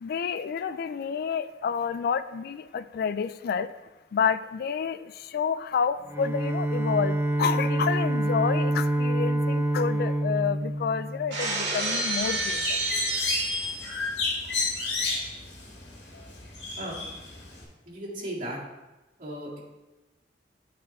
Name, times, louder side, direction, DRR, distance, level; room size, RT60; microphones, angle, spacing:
voice 1, 0.0-3.7 4.1-12.8, left 6 dB, 60° left, 14 dB, 0.3 m, -29 dB
Bowed string instrument, 6.0-11.7, right 1 dB, 15° right, 0.4 m, -27 dB
Shatter, 11.3-14.1, right 2 dB, 75° right, 1.9 m, -29 dB
Bird, 12.2-17.6, left 3 dB, 85° left, 1.8 m, -32 dB
voice 2, 17.9-18.6 19.2-19.6, right 1 dB, 50° right, -6 dB, 2.0 m, -36 dB
8.4 x 4.3 x 4.2 m, 1.1 s
head